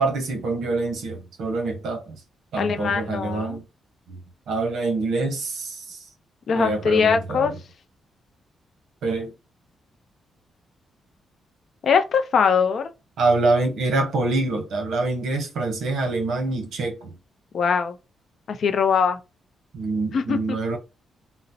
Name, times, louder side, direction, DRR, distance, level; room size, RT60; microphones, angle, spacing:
voice 1, 0.0-2.2 2.5-3.6 4.1-4.2 4.5-6.0 6.5-7.6 9.0-9.3 13.2-17.1 19.7-20.8, right 3 dB, 70° right, 0.9 m, -25 dB
voice 2, 2.6-3.6 6.5-7.5 11.8-12.9 17.5-17.9 18.5-19.2 20.1-20.6, left 6 dB, 50° left, 0.4 m, -21 dB
3.8 x 2.0 x 2.7 m
wide cardioid pair, 165°, 0 cm